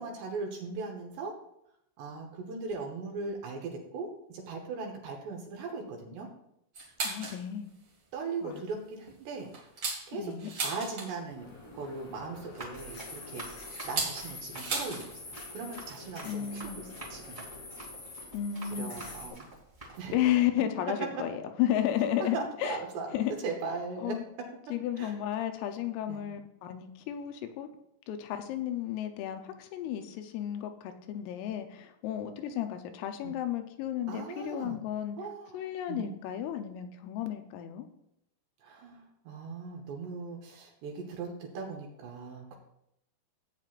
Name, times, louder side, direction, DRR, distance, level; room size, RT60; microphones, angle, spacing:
voice 1, 0.0-1.3 2.0-6.3 8.1-9.5 10.1-10.4 10.6-13.6 13.8-17.5 18.7-19.5 20.0-20.2 22.3-24.2 25.0-25.1 26.1-26.3 33.2-33.3 34.1-34.8 35.2-36.1 38.6-42.6, right 4 dB, 70° right, 1 dB, 2.8 m, -39 dB
sound 1, 6.7-7.4 7.8-7.9 8.3-8.6 9.1-11.3 12.5-15.1 15.4-15.5 15.8-16.1 17.0-17.1 18.0-18.1 19.0-19.1 19.5-19.6 19.7-19.9, right 3 dB, 45° right, 2.0 m, -36 dB
voice 2, 7.0-7.7 8.4-8.6 10.2-10.5 16.2-16.8 18.3-18.9 20.1-22.4 22.6-22.8 23.1-23.3 24.0-24.2 24.7-27.7 28.1-35.2 35.5-37.9, left 11 dB, 80° left, 7 dB, 3.3 m, -33 dB
sound 2, 11.4-19.3, left 3 dB, 40° left, 3.4 m, -46 dB
Run, 12.3-20.2, right 2 dB, 20° right, 1.3 m, -48 dB
15.0 x 9.1 x 2.5 m, 0.79 s
omnidirectional pair, 6.0 m